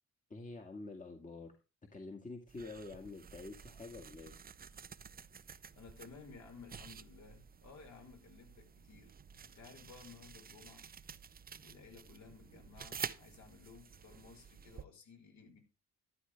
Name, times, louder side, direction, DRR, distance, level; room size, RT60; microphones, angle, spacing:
voice 1, 0.3-1.5 1.9-4.3, left 3 dB, 25° left, 2.0 m, -47 dB
sound 1, 2.5-14.9, right 6 dB, 30° right, 0.7 m, -50 dB
voice 2, 5.8-9.1 9.4-10.9 11.6-15.6, left 5 dB, 65° left, 5.6 m, -56 dB
13.0 x 10.5 x 3.5 m
cardioid pair, 90°, 30 cm